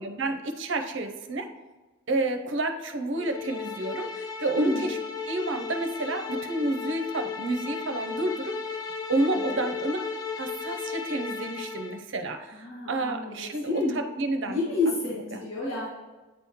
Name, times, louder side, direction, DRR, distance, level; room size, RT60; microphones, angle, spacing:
voice 1, 0.0-1.5 2.1-5.0 5.3-8.6 9.1-10.0 10.4-14.6 15.1-15.4, right 2 dB, 60° right, 6 dB, 0.6 m, -30 dB
sound 1, 3.1-12.0, left 5 dB, 20° left, 0.3 m, -35 dB
voice 2, 4.5-4.9 9.5-9.7 12.5-14.0 14.5-15.9, left 2 dB, 75° left, -7 dB, 1.5 m, -29 dB
8.9 x 3.0 x 3.6 m, 1.2 s
head